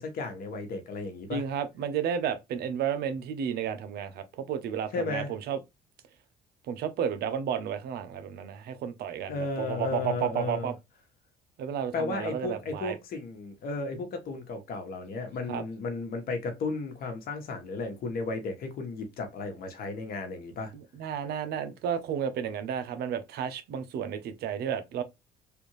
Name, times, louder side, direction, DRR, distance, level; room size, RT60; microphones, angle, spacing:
voice 1, 0.0-1.4 4.9-5.3 9.3-10.7 11.9-20.7, left 3 dB, 60° left, 1.2 m, -34 dB
voice 2, 1.3-5.6 6.7-10.8 11.6-13.0 15.5-15.6 20.7-25.0, right 8 dB, 70° right, 0.7 m, -32 dB
3.4 x 2.6 x 3.1 m
cardioid pair, 110°, 17 cm